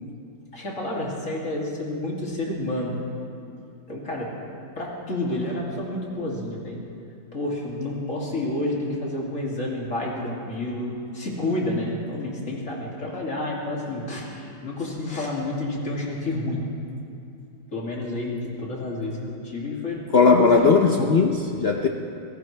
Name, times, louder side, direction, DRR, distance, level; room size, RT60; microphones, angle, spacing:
voice 1, 0.5-2.9 3.9-4.3 4.8-6.8 7.3-16.6 17.7-21.1, left 1 dB, 45° left, -3 dB, 2.9 m, -29 dB
voice 2, 20.1-21.9, left 4 dB, 65° left, 2 dB, 0.6 m, -18 dB
25.0 x 17.0 x 3.3 m, 2.5 s
omnidirectional pair, 2.0 m